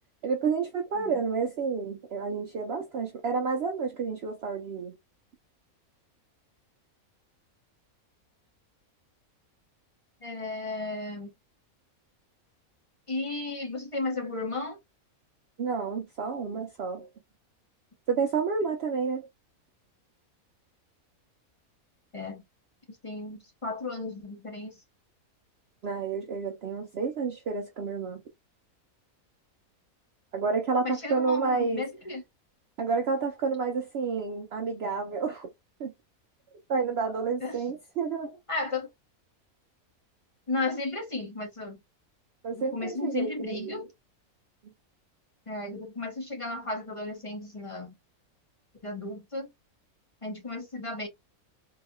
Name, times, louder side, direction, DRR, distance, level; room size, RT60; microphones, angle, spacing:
voice 1, 0.2-4.9 15.6-17.1 18.1-19.3 25.8-28.2 30.3-31.8 32.8-35.5 35.8-35.9 36.7-38.4 42.4-43.8, right 5 dB, 60° right, 0.7 m, -30 dB
voice 2, 10.2-11.3 13.1-14.8 22.1-22.4 23.0-24.8 30.8-32.2 37.4-37.6 38.5-38.9 40.5-41.8 42.6-43.9 45.5-47.9 48.8-49.5 50.2-51.1, left 2 dB, 30° left, 0.8 m, -34 dB
3.9 x 2.7 x 2.2 m
omnidirectional pair, 1.5 m